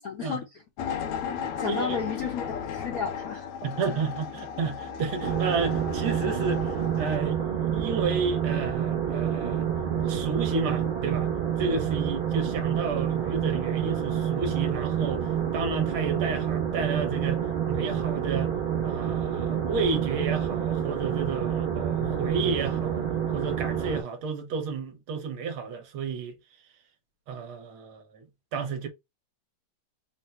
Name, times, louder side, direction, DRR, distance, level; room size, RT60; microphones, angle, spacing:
voice 1, 0.0-0.4 1.2-3.5, left 5 dB, 60° left, 0.9 m, -33 dB
sound 1, 0.8-7.2, left 7 dB, 85° left, 1.5 m, -35 dB
voice 2, 1.6-2.0 3.6-6.7 7.0-9.7 10.0-11.3 11.6-18.5 18.8-23.1 23.3-26.4 27.3-28.9, right 5 dB, 75° right, 1.7 m, -31 dB
sound 2, 5.2-24.0, right 9 dB, 45° right, 0.7 m, -28 dB
4.1 x 2.1 x 4.2 m
omnidirectional pair, 2.4 m